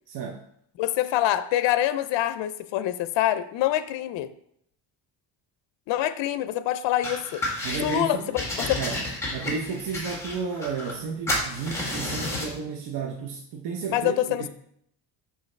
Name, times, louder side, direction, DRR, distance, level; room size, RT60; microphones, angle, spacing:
voice 1, 0.1-0.4 7.6-8.4 8.8-9.0 9.3-14.5, right 5 dB, 65° right, 2 dB, 0.7 m, -32 dB
voice 2, 0.8-4.3 5.9-7.4 7.8-8.8 13.9-14.5, left 13 dB, 75° left, 13 dB, 0.5 m, -25 dB
sound 1, 7.0-8.0 8.4-11.0 11.3-12.6, left 1 dB, 5° left, 1.6 m, -31 dB
6.4 x 5.3 x 3.2 m, 0.71 s
cardioid pair, 150°, 44 cm